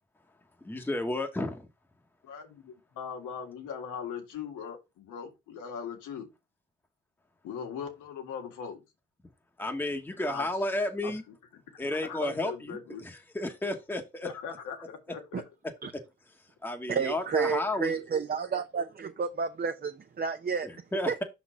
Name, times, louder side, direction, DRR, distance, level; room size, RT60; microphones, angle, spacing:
voice 1, 0.6-1.7 9.6-11.2 11.8-14.3 16.6-17.9 20.6-21.2, left 1 dB, 5° left, 1.1 m, -32 dB
voice 2, 2.2-6.3 7.4-8.8 10.2-10.5 11.0-11.1 11.5-13.0 14.2-15.4, left 7 dB, 85° left, 1.8 m, -40 dB
voice 3, 16.9-20.7 21.1-21.2, right 6 dB, 30° right, 0.6 m, -31 dB
5.7 x 4.2 x 4.9 m
cardioid pair, 90°, 30 cm